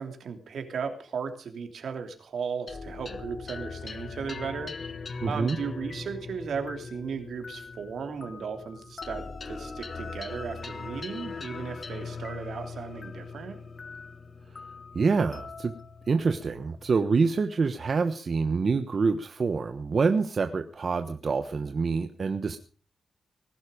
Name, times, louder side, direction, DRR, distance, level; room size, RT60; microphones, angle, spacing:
voice 1, 0.0-4.7 5.3-13.6, right 6 dB, 75° right, 6 dB, 3.1 m, -36 dB
sound 1, 2.7-17.4, left 4 dB, 40° left, 1.4 m, -40 dB
voice 2, 5.2-5.6 14.9-15.7 16.1-22.6, right 4 dB, 50° right, 8 dB, 1.1 m, -26 dB
19.5 x 12.0 x 5.1 m, 0.39 s
wide cardioid pair, 110°, 0 cm